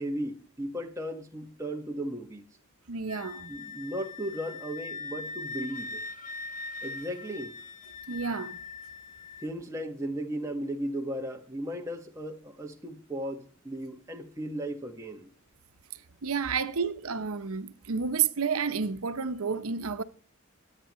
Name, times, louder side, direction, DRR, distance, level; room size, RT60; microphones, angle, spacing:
voice 1, 0.0-2.4 3.5-6.0 6.8-7.6 9.4-15.3, right 1 dB, 15° right, 1.5 m, -36 dB
voice 2, 2.9-3.5 8.1-8.6 16.2-20.0, right 6 dB, 85° right, 0.8 m, -30 dB
Wind instrument woodwind instrument, 3.1-9.5, left 3 dB, 40° left, 0.7 m, -41 dB
23.5 x 9.0 x 3.1 m
head